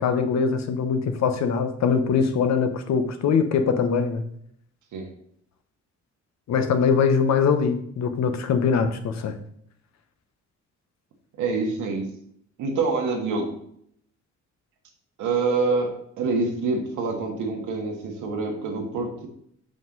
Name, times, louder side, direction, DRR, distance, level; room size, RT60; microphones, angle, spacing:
voice 1, 0.0-4.2 6.5-9.3, left 6 dB, 65° left, 8 dB, 0.9 m, -22 dB
voice 2, 11.4-12.1 12.6-13.5 15.2-19.3, right 3 dB, 80° right, 2 dB, 1.5 m, -26 dB
5.7 x 5.3 x 3.8 m, 0.68 s
cardioid pair, 90°, 30 cm